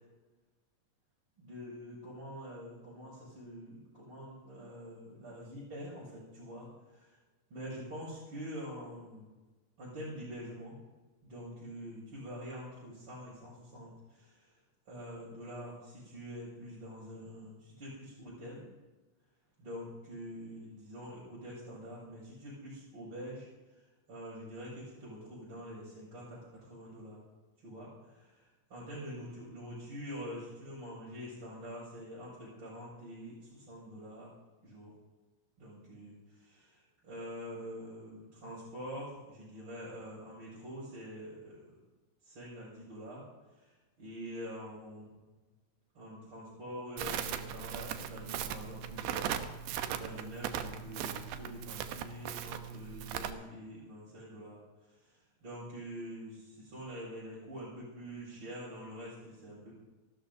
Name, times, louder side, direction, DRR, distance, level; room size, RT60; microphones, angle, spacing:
voice 1, 1.4-7.2 7.5-9.3 9.8-10.8 11.2-14.5 14.9-18.7 19.6-23.5 23.7-23.8 24.1-27.2 27.6-34.3 34.6-34.9 35.6-41.7 42.2-43.2 43.6-45.2 45.9-49.3 49.9-54.6 54.9-59.8, equal, 30° right, -8 dB, 6.9 m, -45 dB
Crackle, 47.0-53.3, right 9 dB, 75° right, 2.5 m, -38 dB
29.0 x 12.5 x 2.7 m, 1.2 s
omnidirectional pair, 5.2 m